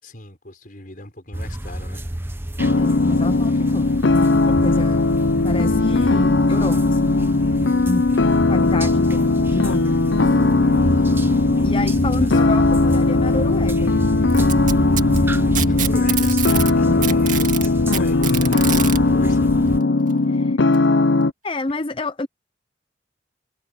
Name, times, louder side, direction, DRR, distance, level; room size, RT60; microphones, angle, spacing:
voice 1, 0.0-2.1 12.2-13.0 15.6-16.4 16.7-19.5 20.2-20.5, left 1 dB, 45° left, 6.1 m, -39 dB
sound 1, 1.3-19.8, right 1 dB, 10° right, 0.8 m, -28 dB
sound 2, 2.6-21.3, left 3 dB, 70° left, 0.7 m, -18 dB
voice 2, 2.8-5.1 5.4-7.2 7.8-10.0 11.0-11.1 11.6-14.0 15.1-15.9 16.8-17.3 20.3-20.6 21.4-22.3, left 2 dB, 25° left, 0.5 m, -29 dB
Packing tape duct tape, 14.3-16.7 17.0-19.0 20.1-20.2 20.7-20.8 21.7-21.8, right 10 dB, 40° right, 2.0 m, -26 dB
head